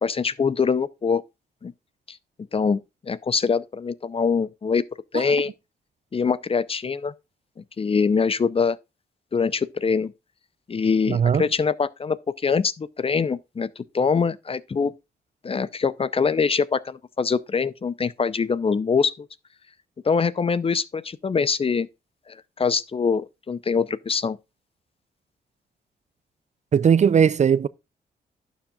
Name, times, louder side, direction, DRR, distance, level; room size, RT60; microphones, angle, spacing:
voice 1, 0.0-1.2 1.6-1.7 2.1-2.2 2.5-4.8 5.1-5.5 6.1-7.1 7.8-8.8 9.3-10.1 10.7-12.2 12.4-14.9 15.4-19.3 20.0-21.9 22.3-24.4, left 5 dB, 35° left, 0.6 m, -24 dB
voice 2, 11.1-11.4 26.7-27.7, right 7 dB, 45° right, 0.4 m, -18 dB
11.5 x 7.2 x 2.4 m
cardioid pair, 95°, 17 cm